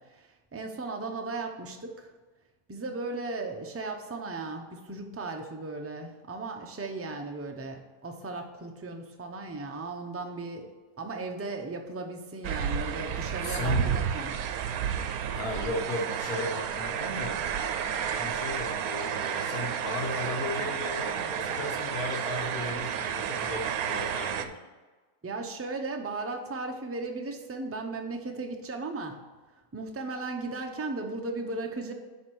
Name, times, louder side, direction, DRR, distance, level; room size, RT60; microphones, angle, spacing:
voice 1, 0.0-2.1 2.7-14.7 25.2-29.2 29.7-31.9, right 3 dB, 20° right, 3 dB, 0.4 m, -36 dB
sound 1, 12.4-24.5, right 8 dB, 75° right, 1.1 m, -31 dB
voice 2, 13.4-13.9 15.4-17.4 18.1-24.6, left 2 dB, 75° left, 1 dB, 1.7 m, -35 dB
10.0 x 3.6 x 6.1 m, 1.3 s
omnidirectional pair, 1.6 m